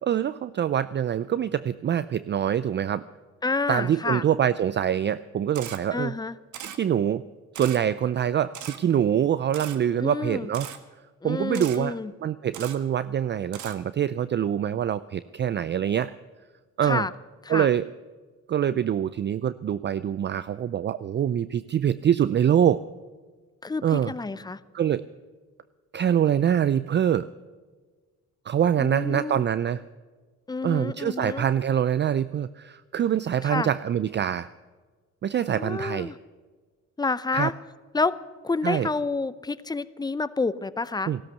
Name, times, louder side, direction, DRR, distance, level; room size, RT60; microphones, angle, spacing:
voice 1, 0.0-3.0 3.7-6.1 6.6-7.2 7.5-10.7 11.2-16.1 16.8-17.1 17.5-17.9 18.5-22.8 23.8-24.1 24.7-25.1 25.9-27.3 28.5-29.8 30.6-34.5 35.2-36.1 37.3-37.5 38.6-38.9 41.1-41.2, right 9 dB, 35° right, 16 dB, 0.4 m, -25 dB
voice 2, 3.4-4.2 5.9-6.3 10.0-10.5 11.2-12.1 16.8-17.1 17.4-17.7 23.6-24.6 28.8-29.4 30.5-31.5 33.4-33.7 35.5-36.2 37.0-37.5 37.9-38.2 38.4-41.1, left 3 dB, 15° left, 15 dB, 0.6 m, -29 dB
Camera, 5.5-5.8 6.5-6.8 7.5-7.8 8.5-8.8 9.5-9.8 10.5-10.8 11.5-11.8 12.5-12.8 13.5-13.8, right 9 dB, 75° right, 1.5 m, -38 dB
16.0 x 12.5 x 6.9 m, 1.4 s
cardioid pair, 90°, 30 cm